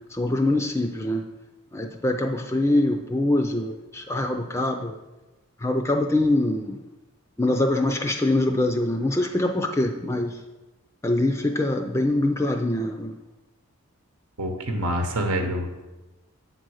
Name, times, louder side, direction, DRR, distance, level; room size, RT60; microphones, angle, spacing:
voice 1, 0.1-1.2 1.7-5.0 5.6-6.8 7.4-10.4 11.0-13.2, left 1 dB, 10° left, 5 dB, 0.4 m, -24 dB
voice 2, 14.4-15.9, equal, 90° right, 4 dB, 1.0 m, -27 dB
8.2 x 3.8 x 6.3 m, 1.1 s
head